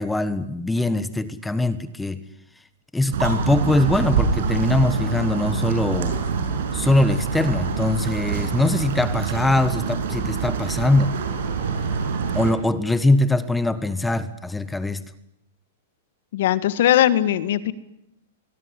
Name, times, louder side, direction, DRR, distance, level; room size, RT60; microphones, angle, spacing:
voice 1, 0.0-2.2 2.9-6.2 6.7-11.1 12.3-15.0, left 2 dB, 5° left, 13 dB, 1.3 m, -22 dB
sound 1, 3.1-12.5, right 6 dB, 70° right, 6.9 m, -25 dB
voice 2, 16.3-17.7, left 12 dB, 65° left, 13 dB, 1.7 m, -19 dB
23.5 x 22.5 x 9.9 m, 0.81 s
hypercardioid pair, 140°, 0 cm